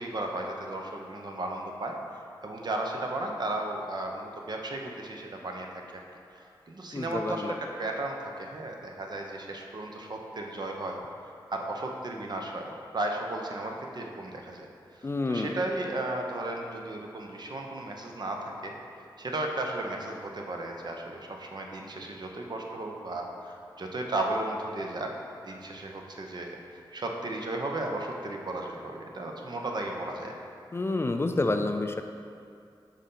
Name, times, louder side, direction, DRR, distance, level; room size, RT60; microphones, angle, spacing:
voice 1, 0.0-2.0 2.4-5.8 6.3-11.0 11.5-14.7 14.9-18.7 19.2-25.1 25.4-30.3, right 2 dB, 55° right, 1 dB, 0.7 m, -35 dB
voice 2, 6.9-7.5 15.0-15.5 30.7-32.0, left 2 dB, 30° left, 6 dB, 0.3 m, -28 dB
6.3 x 4.0 x 3.8 m, 2.4 s
cardioid pair, 45°, 9 cm